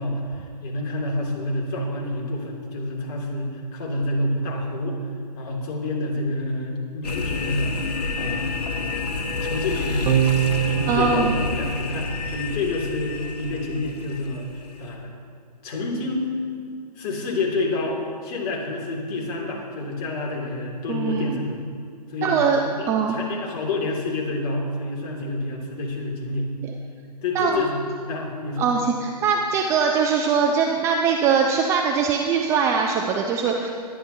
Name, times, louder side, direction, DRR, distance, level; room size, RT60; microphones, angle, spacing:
voice 1, 0.0-5.0 5.3-7.8 8.1-8.9 9.4-10.1 10.7-15.1 15.6-16.3 17.0-21.6 22.1-22.4 22.8-26.5 27.2-27.8 28.1-28.7, left 2 dB, 35° left, -1 dB, 2.3 m, -28 dB
sound 1, 7.0-14.9, left 4 dB, 70° left, 1.5 m, -29 dB
sound 2, 10.1-12.7, right 11 dB, 65° right, 0.7 m, -25 dB
voice 2, 10.9-11.3 20.9-21.4 22.2-22.6 22.9-23.2 27.3-27.6 28.6-33.7, right 6 dB, 15° right, 2 dB, 0.4 m, -22 dB
21.5 x 9.5 x 2.7 m, 2.4 s
hypercardioid pair, 135°, 21 cm